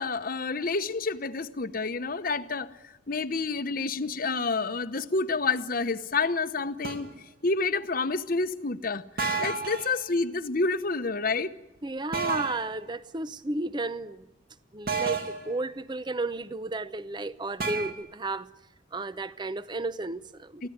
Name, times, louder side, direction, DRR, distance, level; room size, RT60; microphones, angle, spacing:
voice 1, 0.0-2.7 3.1-7.1 7.4-11.5 20.6-20.7, left 3 dB, 50° left, 1.0 m, -29 dB
sound 1, 6.8-7.1 9.2-9.9 12.1-12.7 14.9-15.5 17.6-17.9, right 4 dB, 50° right, 2.2 m, -30 dB
voice 2, 11.8-14.3 14.7-18.5 18.9-20.7, right 2 dB, 25° right, 0.7 m, -33 dB
23.5 x 16.0 x 9.4 m
head